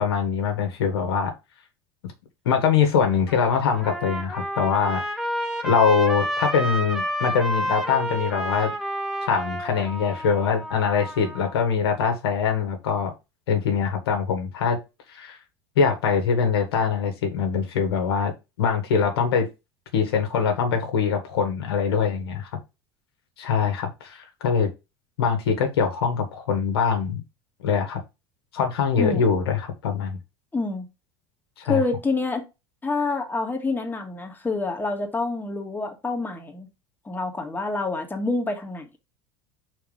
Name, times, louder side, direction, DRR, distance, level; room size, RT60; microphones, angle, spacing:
voice 1, 0.0-1.3 2.4-5.0 5.6-8.7 9.2-13.1 13.5-14.8 15.1-15.4 15.7-18.3 18.6-19.5 19.9-22.5 23.4-24.7 25.2-27.2 27.6-28.0 28.5-30.2 31.6-31.8, left 6 dB, 75° left, 1.7 m, -23 dB
Trumpet, 3.1-11.5, equal, 5° right, 1.5 m, -30 dB
voice 2, 30.5-30.9 31.7-32.4 32.8-36.7 37.0-39.0, left 3 dB, 15° left, 1.6 m, -27 dB
5.1 x 4.2 x 5.0 m
hypercardioid pair, 80°, 13 cm